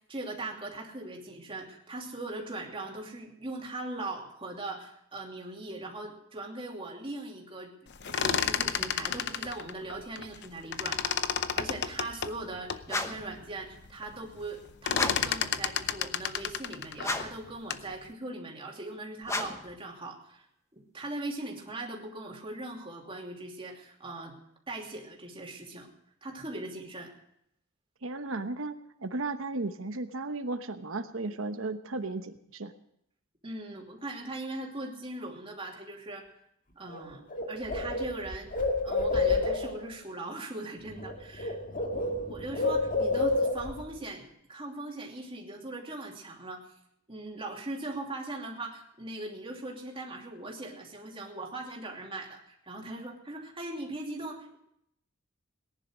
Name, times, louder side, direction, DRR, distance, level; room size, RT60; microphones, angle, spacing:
voice 1, 0.1-20.5 20.7-24.4 24.7-25.9 26.2-27.1 33.4-36.3 36.7-37.2 37.5-38.5 38.8-41.6 42.3-46.6 47.1-54.6, right 2 dB, 25° right, -1 dB, 2.8 m, -40 dB
sound 1, 7.9-10.5 10.7-12.9 13.4-13.5 13.7-14.1 14.4-17.9, left 8 dB, 55° left, 0.7 m, -31 dB
sound 2, 12.9-13.3 14.9-15.4 17.0-17.5 19.2-19.7, left 2 dB, 15° left, 1.1 m, -33 dB
voice 2, 28.0-32.7, right 2 dB, 70° right, 9 dB, 1.0 m, -35 dB
Bird, 36.9-37.0 37.3-39.8 40.9-41.1 41.4-43.8, left 3 dB, 40° left, 2.0 m, -29 dB
18.5 x 10.5 x 6.3 m, 0.75 s
head